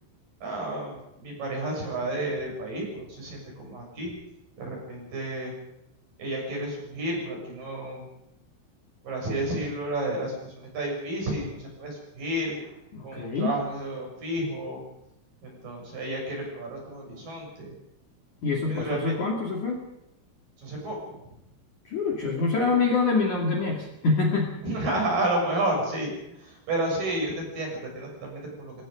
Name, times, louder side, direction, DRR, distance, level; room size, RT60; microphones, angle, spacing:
voice 1, 0.4-4.1 4.6-5.5 6.2-8.0 9.0-12.7 13.0-14.8 15.4-17.7 18.7-19.1 20.6-21.2 24.6-26.1 26.4-28.7, right 1 dB, 40° right, 0 dB, 8.6 m, -31 dB
voice 2, 12.9-13.5 18.4-19.8 21.8-24.5, left 4 dB, 45° left, -1 dB, 3.1 m, -25 dB
25.0 x 20.0 x 5.2 m, 0.86 s
omnidirectional pair, 6.0 m